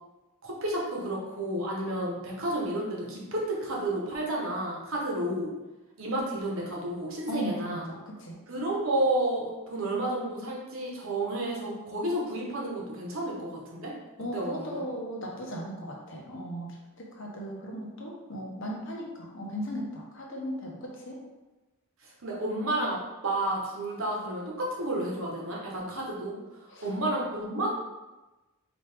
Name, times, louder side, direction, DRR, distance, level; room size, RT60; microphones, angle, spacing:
voice 1, 0.4-5.5 6.0-7.8 8.5-13.9 14.3-14.8 22.0-27.7, right 1 dB, 65° right, -2 dB, 1.0 m, -31 dB
voice 2, 7.3-8.3 14.2-21.2 26.7-26.9, equal, 60° left, -2 dB, 0.9 m, -37 dB
4.4 x 3.0 x 3.4 m, 1.1 s
head